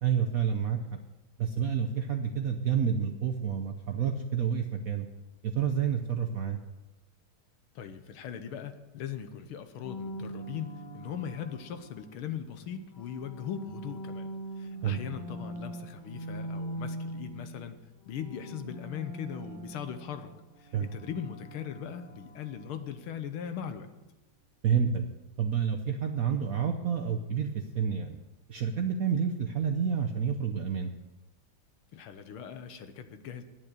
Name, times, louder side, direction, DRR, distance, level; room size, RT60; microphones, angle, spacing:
voice 1, 0.0-1.0 1.4-5.1 5.4-6.6 14.8-15.0 20.7-20.9 24.6-25.0 25.4-28.2 28.5-30.9, right 7 dB, 65° right, 4 dB, 0.8 m, -29 dB
voice 2, 7.8-17.8 18.1-20.3 20.6-23.9 31.9-33.4, left 8 dB, 85° left, 9 dB, 1.8 m, -39 dB
sound 1, 9.8-12.3 12.9-17.8 18.0-23.0, right 1 dB, 40° left, 2.4 m, -42 dB
10.5 x 9.4 x 6.6 m, 1.0 s
omnidirectional pair, 2.3 m